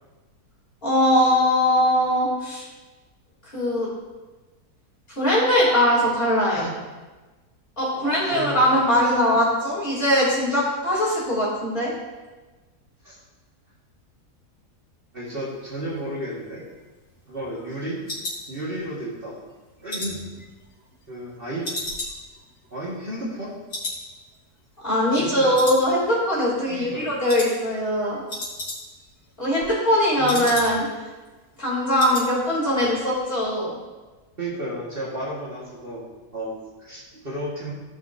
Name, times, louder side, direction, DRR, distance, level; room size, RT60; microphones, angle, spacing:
voice 1, 0.8-2.6 3.5-3.9 5.2-6.7 7.8-11.9 24.8-28.2 29.4-30.9 31.6-33.7, equal, 35° left, -7 dB, 3.2 m, -21 dB
voice 2, 8.0-9.2 13.0-13.2 15.1-16.6 17.3-18.0 18.5-19.4 19.8-20.2 21.1-21.7 22.7-23.5 25.1-25.6 26.7-27.1 30.2-30.5 34.4-37.7, right 1 dB, 35° right, -6 dB, 1.7 m, -33 dB
sound 1, 16.4-19.1 19.5-21.3 21.6-23.4 23.7-24.1 24.3-24.4 24.9-25.3 25.5-26.3 26.6-26.9 27.3-27.5 27.8-27.9 28.1-29.1 29.4-31.0 31.3-31.4 31.7-32.3 32.6-32.9 33.1-33.2, left 2 dB, 90° left, 3.2 m, -35 dB
14.5 x 5.9 x 2.6 m, 1.2 s
omnidirectional pair, 1.7 m